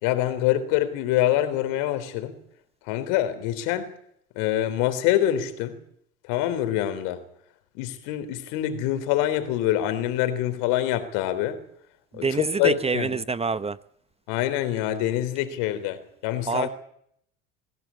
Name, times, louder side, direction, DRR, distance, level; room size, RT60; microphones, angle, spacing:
voice 1, 0.0-2.4 2.9-3.9 4.4-5.8 6.3-7.2 7.8-11.6 12.2-12.3 12.6-13.1 14.3-16.0 16.2-16.7, left 12 dB, 70° left, 3.8 m, -25 dB
voice 2, 12.1-13.8 16.5-16.7, right 4 dB, 20° right, 0.9 m, -26 dB
23.5 x 16.5 x 8.7 m
hypercardioid pair, 85°, 33 cm